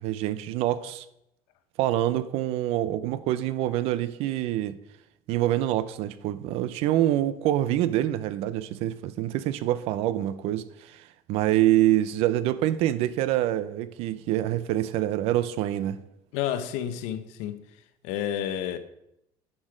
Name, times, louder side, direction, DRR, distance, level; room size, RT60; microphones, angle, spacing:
voice 1, 0.0-1.0 1.8-4.8 5.3-16.0, right 13 dB, 60° right, 0.6 m, -26 dB
voice 2, 16.3-17.6 18.0-18.8, left 10 dB, 90° left, 0.9 m, -30 dB
10.0 x 6.4 x 5.0 m
cardioid pair, 175°, 11 cm